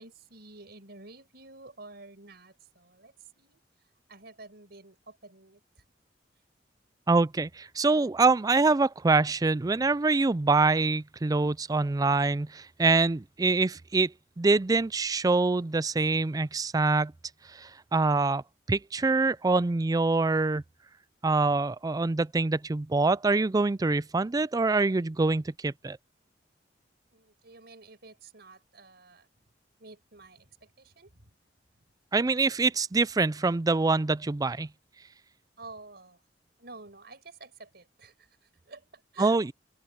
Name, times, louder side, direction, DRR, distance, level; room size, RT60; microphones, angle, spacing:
voice 1, 0.0-3.6 4.1-5.8 27.1-29.3 29.8-31.3 35.6-36.2 36.6-39.5, right 3 dB, 60° right, 5.4 m, -50 dB
voice 2, 7.1-17.1 17.5-18.4 18.7-20.6 21.2-26.0 32.1-34.7 39.2-39.5, right 3 dB, 20° right, 0.4 m, -25 dB
open air
head